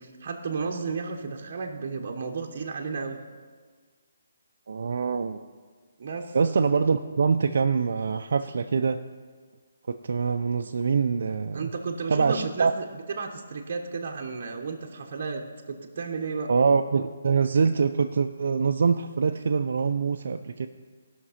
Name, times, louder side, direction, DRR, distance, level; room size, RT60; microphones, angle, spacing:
voice 1, 0.0-3.2 6.0-6.4 11.5-16.5, right 4 dB, 40° right, 0 dB, 1.0 m, -33 dB
voice 2, 4.7-5.4 6.3-9.0 9.9-11.7 12.1-12.7 16.5-20.7, right 5 dB, 60° right, 6 dB, 0.4 m, -24 dB
15.0 x 5.9 x 5.6 m, 1.5 s
hypercardioid pair, 165°, 0 cm